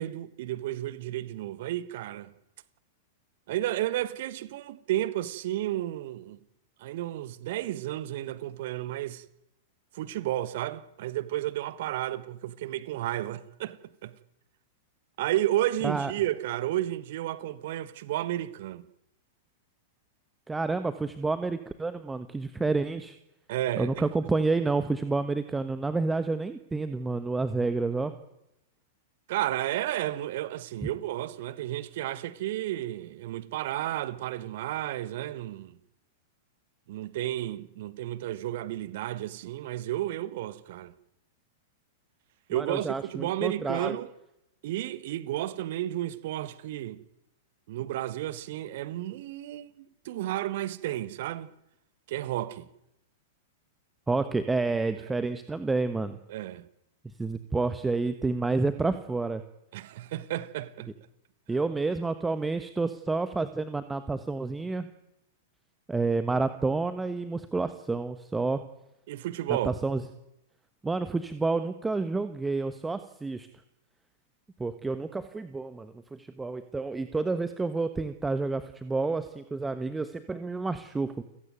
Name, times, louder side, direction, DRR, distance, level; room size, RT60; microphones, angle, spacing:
voice 1, 0.0-2.3 3.5-6.4 6.8-9.2 9.9-13.8 14.0-14.1 15.2-18.8 23.5-23.9 29.3-35.8 36.9-40.9 42.5-44.1 44.6-47.0 47.7-51.5 52.1-52.7 56.3-56.7 59.7-60.9 69.1-69.7, right 14 dB, 50° right, 1.3 m, -32 dB
voice 2, 20.5-23.2 23.8-28.1 42.5-44.0 54.1-56.2 57.2-59.4 61.5-64.9 65.9-68.6 69.5-70.0 70.8-73.5 74.6-81.2, right 3 dB, 10° right, 1.3 m, -29 dB
29.0 x 16.5 x 9.2 m
figure-of-eight pair, 95°, 0 cm